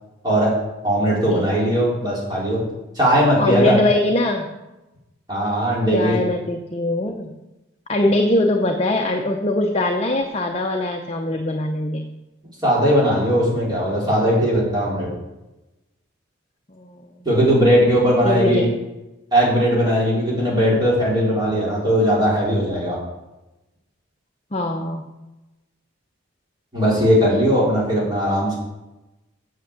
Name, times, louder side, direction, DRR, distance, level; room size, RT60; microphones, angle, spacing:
voice 1, 0.8-2.6 2.9-3.8 5.3-6.2 12.6-15.1 17.3-18.7 19.3-23.0 26.7-28.6, equal, 20° right, -6 dB, 4.1 m, -18 dB
voice 2, 3.4-4.5 5.9-7.4 7.9-12.0 16.8-17.1 18.2-18.8 24.5-25.1, left 1 dB, 30° left, 2 dB, 0.7 m, -22 dB
8.6 x 7.3 x 7.3 m, 1.0 s
head